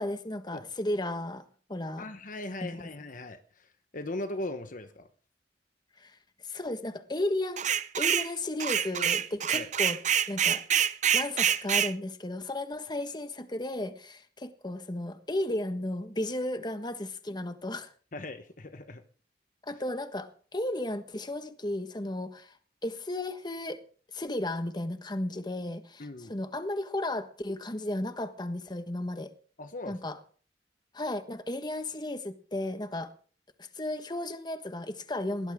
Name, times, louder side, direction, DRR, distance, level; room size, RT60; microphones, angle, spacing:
voice 1, 0.0-1.4 1.7-2.1 2.6-2.9 6.0-6.2 6.4-7.7 8.0-10.0 10.3-10.6 11.1-17.9 19.6-22.6 22.8-23.8 24.1-29.3 29.9-30.2 30.9-33.1 33.6-35.5, left 1 dB, 25° left, 9 dB, 1.4 m, -34 dB
voice 2, 2.0-5.1 9.5-9.7 18.1-19.0 26.0-26.3 29.6-30.0, left 2 dB, 50° left, 9 dB, 1.1 m, -39 dB
sound 1, 7.6-8.3 8.6-11.9, right 9 dB, 45° right, 0.7 m, -26 dB
20.5 x 18.5 x 3.7 m, 0.42 s
head